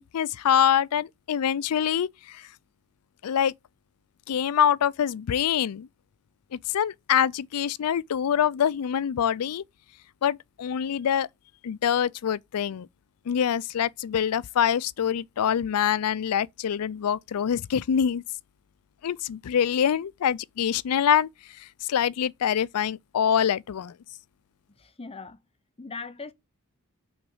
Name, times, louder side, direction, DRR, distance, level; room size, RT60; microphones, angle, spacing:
voice 1, 0.0-2.5 3.2-3.5 4.3-5.9 6.5-9.6 10.2-11.3 11.6-12.9 13.3-18.2 19.0-21.3 21.6-23.9, left 8 dB, 80° left, 0.4 m, -25 dB
voice 2, 24.8-25.4 25.8-26.3, left 4 dB, 25° left, 0.7 m, -39 dB
6.0 x 3.9 x 5.5 m
head